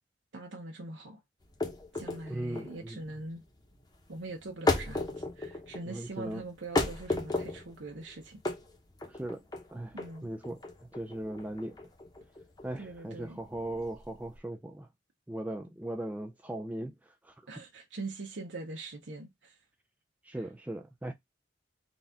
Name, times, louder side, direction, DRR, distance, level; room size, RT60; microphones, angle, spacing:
voice 1, 0.3-1.2 1.9-3.4 4.1-8.4 9.9-10.3 12.8-13.4 17.5-19.6 20.3-20.4, right 2 dB, 85° right, 0.7 m, -42 dB
sound 1, 1.4-14.4, left 2 dB, 20° left, 0.8 m, -35 dB
voice 2, 2.3-3.0 5.8-6.4 9.0-9.4 9.7-10.0 10.2-11.8 12.6-14.9 15.3-17.3 20.2-21.1, right 1 dB, 10° right, 0.3 m, -38 dB
4.0 x 2.4 x 3.4 m
head